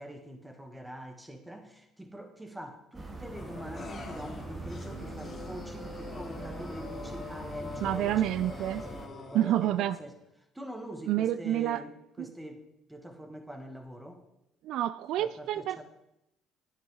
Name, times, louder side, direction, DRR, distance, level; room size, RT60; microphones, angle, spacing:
voice 1, 0.0-8.3 8.9-9.1 9.3-10.1 10.6-12.6 12.9-14.2 15.2-15.8, right 1 dB, 10° right, 5 dB, 1.8 m, -44 dB
sound 1, 2.9-9.1, right 2 dB, 30° right, 1.9 m, -42 dB
sound 2, 3.3-10.0, left 3 dB, 35° left, 2.5 m, -44 dB
voice 2, 7.8-8.8 9.3-10.0 11.1-11.8 14.6-15.8, right 12 dB, 70° right, 15 dB, 0.3 m, -28 dB
10.5 x 9.4 x 3.8 m, 0.86 s
supercardioid pair, 80°, 0 cm